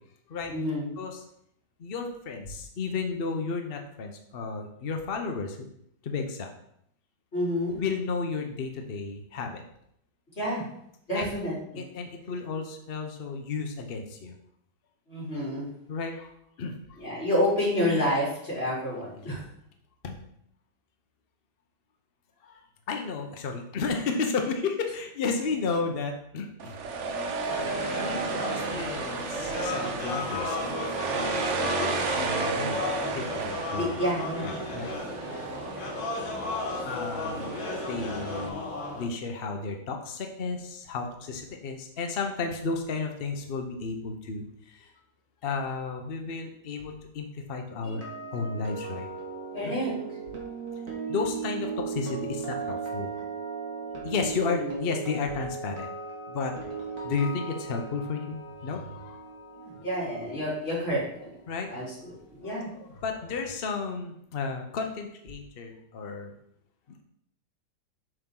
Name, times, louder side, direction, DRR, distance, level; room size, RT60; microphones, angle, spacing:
voice 1, 0.5-0.9 7.3-7.8 10.4-10.6 11.1-11.8 15.1-15.7 17.0-19.4 33.7-34.5 49.5-49.9 54.4-54.8 59.6-61.3 61.7-62.7, equal, 30° left, -8 dB, 3.9 m, -29 dB
voice 2, 1.8-5.7 6.0-6.5 7.8-9.6 11.1-11.2 11.8-14.3 15.9-17.0 19.3-19.4 20.0-20.2 22.4-22.6 22.9-26.7 27.6-28.4 28.7-32.8 33.1-34.0 34.4-34.9 35.2-35.3 36.8-38.6 39.0-44.9 45.4-48.0 48.3-49.1 49.6-49.8 50.7-50.8 51.1-53.1 54.0-55.9 56.3-56.5 57.0-59.2 61.5-61.7 62.4-66.3, left 4 dB, 65° left, 4 dB, 0.5 m, -33 dB
sound 1, 26.6-38.5, right 4 dB, 60° right, 0.7 m, -33 dB
sound 2, 27.5-39.1, left 3 dB, 80° left, 2.1 m, -35 dB
sound 3, 47.8-61.9 62.1-62.4, right 5 dB, 45° right, 2.1 m, -37 dB
8.0 x 6.0 x 3.7 m, 0.72 s
omnidirectional pair, 2.1 m